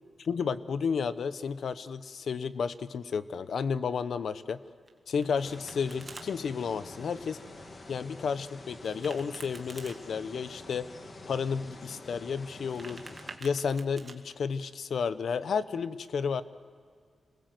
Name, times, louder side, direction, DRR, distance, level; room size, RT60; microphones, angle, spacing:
voice 1, 0.3-4.6 5.1-7.4 7.9-10.9 11.2-13.0 13.4-16.4, left 6 dB, 65° left, 14 dB, 0.8 m, -32 dB
Domestic sounds home sounds, 4.9-6.3 8.8-10.0 12.5-14.1, right 3 dB, 30° right, 1.8 m, -48 dB
sound 1, 5.4-13.4, left 2 dB, 35° left, 1.8 m, -47 dB
27.0 x 20.5 x 7.8 m, 2.1 s
wide cardioid pair, 155°, 0 cm